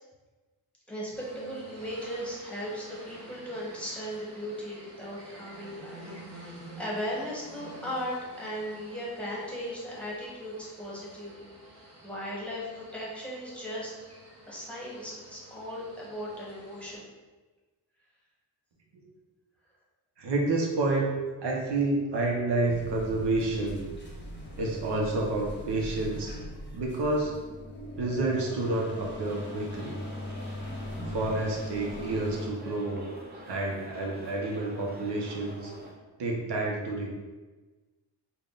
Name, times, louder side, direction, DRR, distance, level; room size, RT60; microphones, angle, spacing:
voice 1, 0.9-11.5 12.0-13.9 14.5-17.1, equal, 5° left, -6 dB, 1.1 m, -37 dB
sound 1, 1.1-17.0, right 1 dB, 40° right, 1.1 m, -49 dB
voice 2, 20.2-21.1 21.4-23.9 24.6-26.4 26.7-27.3 28.0-30.0 31.1-33.0 33.4-35.7 36.2-37.1, right 2 dB, 75° right, -1 dB, 0.8 m, -29 dB
sound 2, 22.7-32.5, left 1 dB, 25° left, 0.8 m, -40 dB
sound 3, 29.2-35.9, equal, 25° right, 0.7 m, -47 dB
3.5 x 2.2 x 3.8 m, 1.2 s
cardioid pair, 75°, 42 cm